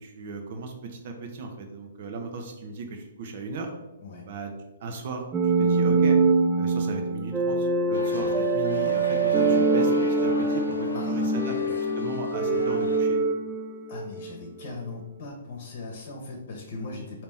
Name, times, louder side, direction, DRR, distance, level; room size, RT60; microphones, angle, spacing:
voice 1, 0.0-3.7 4.3-4.5 4.8-6.2 6.6-13.2, right 3 dB, 50° right, 4 dB, 0.8 m, -36 dB
sound 1, 5.3-14.3, right 3 dB, 15° right, 0.4 m, -24 dB
sound 2, 7.9-13.0, left 2 dB, 90° left, 0.5 m, -40 dB
voice 2, 10.9-11.6 12.3-12.7 13.9-17.2, left 3 dB, 50° left, 0 dB, 1.0 m, -39 dB
4.1 x 2.8 x 3.5 m, 1.0 s
hypercardioid pair, 130°, 0 cm